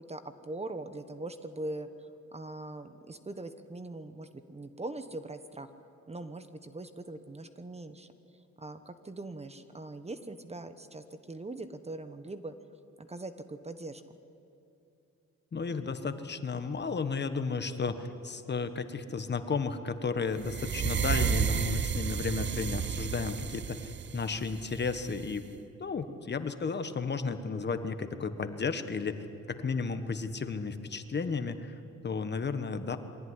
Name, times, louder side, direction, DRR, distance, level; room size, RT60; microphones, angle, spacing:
voice 1, 0.0-5.7 6.1-8.1 8.6-12.5 13.0-14.2, right 2 dB, 20° right, 10 dB, 1.2 m, -41 dB
voice 2, 15.5-25.4 25.8-29.2 29.5-33.0, left 4 dB, 35° left, 9 dB, 1.4 m, -33 dB
sound 1, 20.4-25.4, right 7 dB, 40° right, 0.7 m, -32 dB
23.5 x 17.0 x 9.8 m, 2.7 s
cardioid pair, 90°, 30 cm